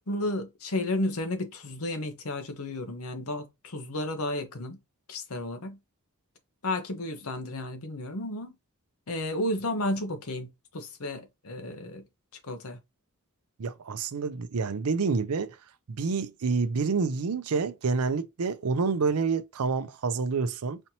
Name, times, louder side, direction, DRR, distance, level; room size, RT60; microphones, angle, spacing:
voice 1, 0.1-4.8 5.1-5.8 6.6-8.5 9.1-12.0 12.5-12.8, left 1 dB, 65° left, 0.9 m, -32 dB
voice 2, 13.6-15.6 15.9-20.8, right 4 dB, 75° right, 0.5 m, -28 dB
4.2 x 2.9 x 2.8 m
head